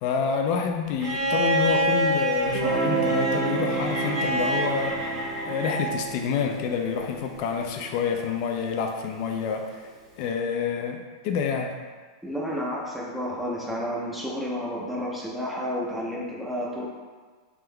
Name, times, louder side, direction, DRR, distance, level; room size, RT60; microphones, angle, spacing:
voice 1, 0.0-5.1 5.4-9.9 10.2-11.8, left 6 dB, 45° left, 4 dB, 0.4 m, -28 dB
Bowed string instrument, 1.0-6.0 7.5-7.6, right 1 dB, 30° right, 0.9 m, -27 dB
Guitar, 2.5-8.2, right 4 dB, 60° right, 1.1 m, -31 dB
voice 2, 12.2-16.8, equal, 5° right, -4 dB, 0.6 m, -31 dB
3.6 x 2.9 x 3.3 m, 1.5 s
supercardioid pair, 150°, 3 cm